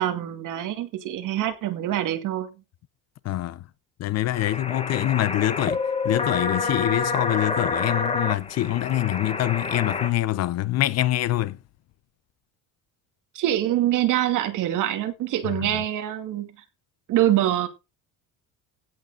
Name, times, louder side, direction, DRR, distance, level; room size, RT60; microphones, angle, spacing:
voice 1, 0.0-2.5 13.3-16.5 17.1-17.7, right 12 dB, 55° right, 2.5 m, -24 dB
voice 2, 3.2-3.6 4.0-11.6 15.5-15.8, left 14 dB, 45° left, 0.7 m, -25 dB
sound 1, 4.3-10.1, left 4 dB, 15° left, 1.5 m, -28 dB
16.5 x 6.6 x 3.8 m
cardioid pair, 180°, 36 cm